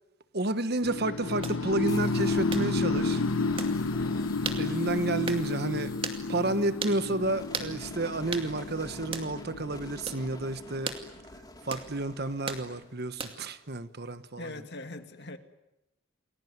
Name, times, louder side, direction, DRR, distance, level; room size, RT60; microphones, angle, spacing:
voice 1, 0.3-3.2 4.6-5.9 6.3-11.0 11.7-14.6, right 2 dB, 50° right, 1.3 m, -31 dB
sound 1, 0.8-10.8, left 3 dB, 75° left, 1.1 m, -31 dB
sound 2, 1.4-1.6 2.5-2.7 3.6-3.7 4.5-4.6 5.3-5.5 6.0-6.2 6.8-7.0 7.5-7.7 8.3-8.5 9.1-9.3 10.1-10.2 10.9-11.0 11.7-11.9 12.5-12.7 13.2-13.5, right 4 dB, 25° right, 2.4 m, -35 dB
sound 3, 1.9-13.7, left 2 dB, 20° left, 2.3 m, -48 dB
voice 2, 4.0-4.4 14.4-15.4, left 2 dB, 55° left, 2.1 m, -42 dB
29.0 x 21.5 x 9.5 m
head